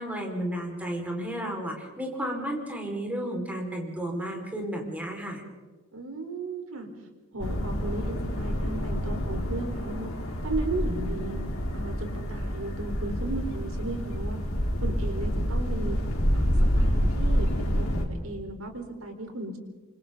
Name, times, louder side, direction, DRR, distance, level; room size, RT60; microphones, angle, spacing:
voice 1, 0.0-5.4, right 1 dB, 5° right, 0 dB, 5.1 m, -32 dB
voice 2, 5.9-6.9 7.3-10.1 10.4-11.4 11.7-14.4 14.8-16.0 16.3-19.6, right 2 dB, 80° right, 4 dB, 4.3 m, -35 dB
sound 1, 7.4-18.0, equal, 80° left, 3.8 m, -28 dB
28.5 x 26.5 x 4.0 m, 1.3 s
head